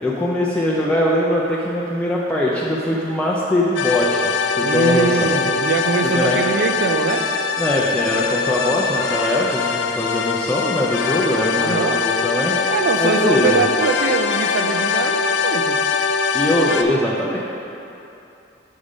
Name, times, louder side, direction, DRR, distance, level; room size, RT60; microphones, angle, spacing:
voice 1, 0.0-5.3 6.1-6.4 7.6-12.6 13.0-13.6 16.3-17.4, left 1 dB, 5° left, -6 dB, 0.4 m, -21 dB
sound 1, 3.8-16.8, left 5 dB, 80° left, 0.4 m, -22 dB
voice 2, 4.6-7.3 11.6-12.0 12.7-15.8, right 4 dB, 65° right, 7 dB, 0.4 m, -22 dB
5.4 x 5.1 x 4.9 m, 2.8 s
head